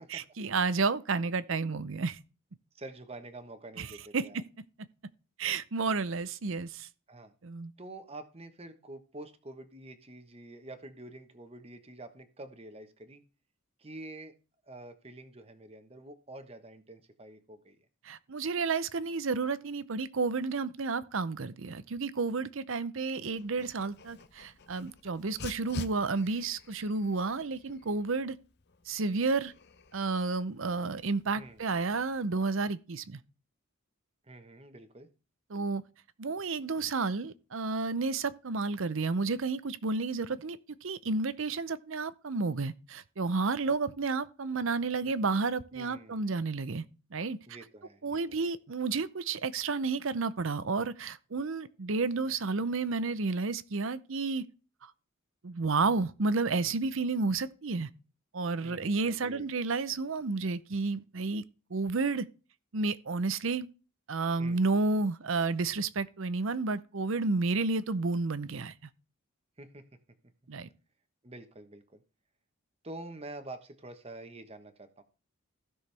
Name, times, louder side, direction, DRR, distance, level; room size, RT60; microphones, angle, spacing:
voice 1, 0.1-2.2 3.8-3.9 4.1-4.4 5.4-6.9 7.4-7.7 18.0-28.4 28.9-29.5 29.9-33.2 35.5-35.8 36.2-46.8 47.1-47.4 48.0-54.4 54.8-54.9 55.4-57.9 58.3-61.4 61.7-62.3 62.7-63.7 64.1-68.7 70.5-70.7, right 4 dB, 65° right, 0.7 m, -31 dB
voice 2, 2.7-4.4 7.1-7.3 7.8-13.2 13.8-14.3 14.7-17.9 31.3-31.6 34.2-35.1 45.7-46.5 47.5-48.5 58.6-59.5 64.4-64.6 69.6-69.8 71.2-72.0 72.8-75.0, right 2 dB, 30° right, 1.2 m, -47 dB
Dog, 23.4-32.4, left 3 dB, 50° left, 0.7 m, -48 dB
15.5 x 6.3 x 3.4 m
head